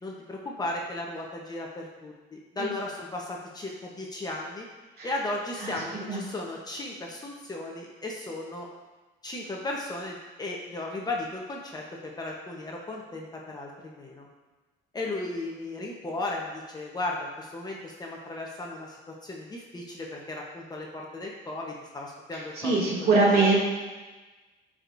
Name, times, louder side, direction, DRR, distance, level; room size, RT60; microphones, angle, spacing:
voice 1, 0.0-4.6 5.0-8.7 9.2-11.8 12.2-14.3 14.9-19.0 19.2-22.8 23.3-23.5, left 2 dB, 20° left, -2 dB, 0.9 m, -35 dB
voice 2, 22.3-23.6, right 3 dB, 50° right, -4 dB, 2.3 m, -23 dB
14.0 x 4.9 x 2.6 m, 1.2 s
cardioid pair, 150°, 21 cm